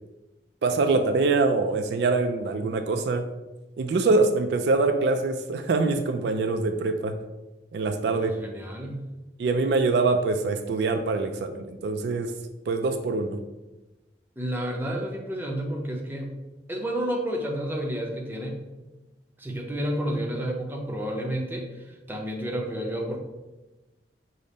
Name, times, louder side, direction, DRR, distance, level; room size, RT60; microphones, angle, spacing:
voice 1, 0.6-3.3 3.8-7.2 7.7-8.3 9.4-12.4 12.7-13.4, right 3 dB, 65° right, 7 dB, 0.3 m, -24 dB
voice 2, 8.1-9.2 14.4-16.4 16.7-18.6 19.4-23.2, equal, 10° right, 0 dB, 0.6 m, -31 dB
5.1 x 2.1 x 4.0 m, 1.1 s
head